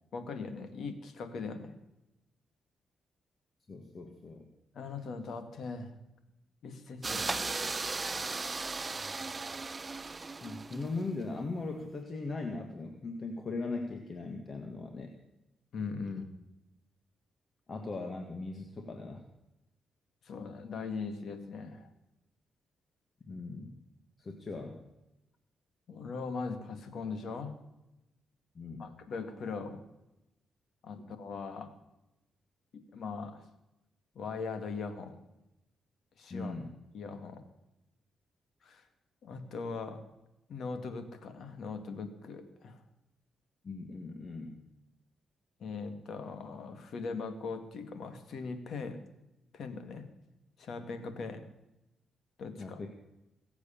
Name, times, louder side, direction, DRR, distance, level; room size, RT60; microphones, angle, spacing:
voice 1, 0.1-1.7 4.7-5.9 6.6-7.2 15.7-16.3 20.2-21.9 25.9-27.5 28.8-29.8 30.8-31.7 32.7-33.4 34.2-35.2 36.2-36.5 36.9-37.4 38.6-38.8 39.2-40.0 40.5-42.8 45.6-49.0 49.5-50.1 50.6-51.4 52.4-52.8, left 4 dB, 70° left, 9 dB, 2.1 m, -40 dB
voice 2, 3.7-4.5 7.1-7.2 10.4-15.1 17.7-19.2 23.3-23.7 24.2-24.8 28.6-28.9 36.3-36.7 43.6-44.6 52.6-52.9, left 3 dB, 40° left, 4 dB, 1.9 m, -39 dB
sound 1, 7.0-11.1, right 3 dB, 30° right, 0.6 m, -36 dB
21.5 x 8.1 x 7.2 m, 0.92 s
cardioid pair, 75°, 0 cm